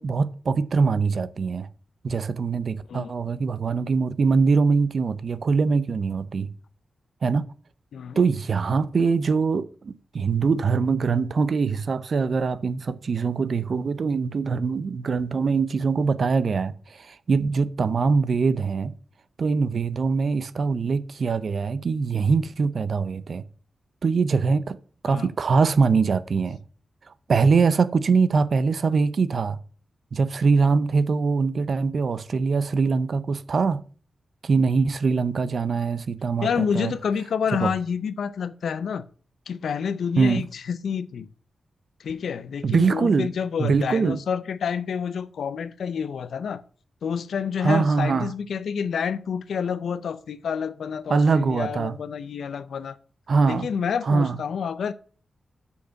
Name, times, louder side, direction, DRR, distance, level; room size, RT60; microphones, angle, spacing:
voice 1, 0.0-1.7 2.0-6.5 7.2-7.5 8.2-18.9 19.4-23.4 24.0-24.8 25.0-26.6 27.3-29.6 30.1-33.8 34.4-36.9 37.6-37.7 40.2-40.4 42.6-43.3 43.6-44.2 47.6-48.3 51.1-52.0 53.3-53.7 54.0-54.4, right 4 dB, 50° right, 0.5 m, -23 dB
voice 2, 36.4-39.0 39.5-41.3 42.0-46.6 47.0-53.0 53.5-54.9, left 7 dB, 80° left, 0.6 m, -28 dB
6.6 x 5.2 x 6.9 m
wide cardioid pair, 150°, 0 cm